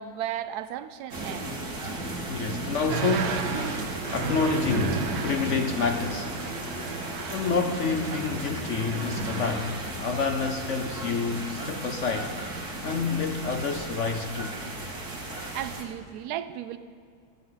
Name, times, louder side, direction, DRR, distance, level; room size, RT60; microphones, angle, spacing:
voice 1, 0.0-1.5 15.5-16.8, right 11 dB, 70° right, 12 dB, 1.0 m, -34 dB
sound 1, 1.1-15.8, right 2 dB, 50° right, 2.2 m, -34 dB
voice 2, 2.3-3.5 4.1-6.3 7.3-14.6, left 4 dB, 70° left, 5 dB, 0.7 m, -28 dB
sound 2, 2.9-9.8, right 6 dB, 85° right, 1.8 m, -35 dB
sound 3, 5.2-11.1, left 3 dB, 85° left, 1.9 m, -45 dB
15.5 x 15.5 x 3.9 m, 2.2 s
omnidirectional pair, 2.2 m